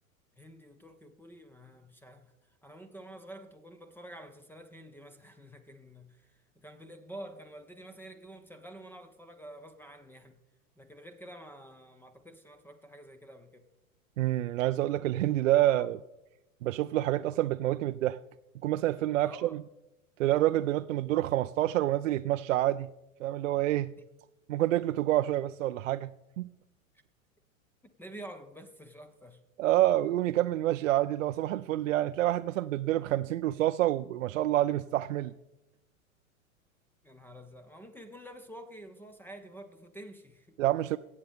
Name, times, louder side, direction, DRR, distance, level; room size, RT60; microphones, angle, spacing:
voice 1, 0.4-10.4 10.8-13.7 15.7-15.9 19.2-19.5 28.0-29.4 37.0-40.6, right 1 dB, 5° left, 0.8 m, -49 dB
voice 2, 14.2-16.0 16.6-18.2 18.6-19.6 20.2-22.9 23.2-23.9 24.5-26.1 26.4-26.5 29.6-35.3 40.6-41.0, right 14 dB, 65° right, 0.5 m, -27 dB
22.0 x 8.5 x 3.5 m
hypercardioid pair, 100°, 42 cm